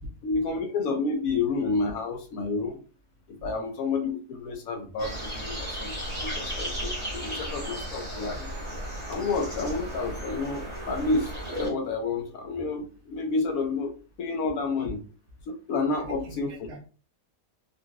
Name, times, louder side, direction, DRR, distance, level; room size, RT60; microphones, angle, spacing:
voice 1, 0.2-2.8 3.3-8.5 9.1-15.0 15.7-16.7, left 3 dB, 75° left, 4 dB, 1.0 m, -30 dB
sound 1, 5.0-11.7, equal, 20° right, 1.1 m, -35 dB
voice 2, 16.0-16.8, right 1 dB, 90° right, 1 dB, 1.4 m, -42 dB
3.8 x 2.3 x 2.3 m, 0.37 s
omnidirectional pair, 1.5 m